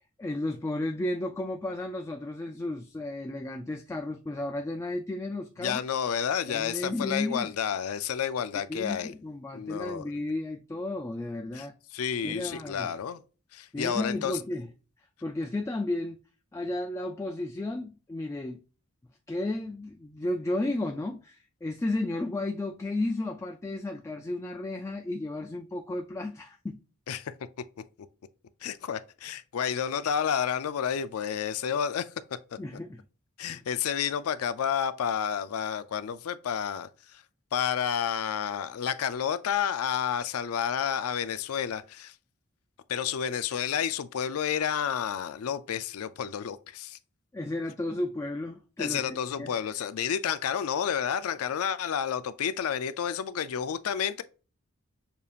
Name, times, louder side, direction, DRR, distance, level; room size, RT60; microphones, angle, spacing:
voice 1, 0.2-5.8 6.5-7.5 8.7-11.7 12.2-12.9 13.7-14.7 15.2-16.2 16.5-18.6 19.3-26.8 32.6-33.0 33.5-33.6 47.3-49.5, left 2 dB, 15° left, 0.3 m, -33 dB
voice 2, 5.6-9.1 9.5-10.1 11.5-11.7 11.9-13.2 13.5-14.4 27.1-27.3 28.6-32.1 33.4-37.2 37.5-42.1 42.9-47.0 48.8-54.2, left 8 dB, 85° left, 0.4 m, -30 dB
6.7 x 2.7 x 2.4 m
head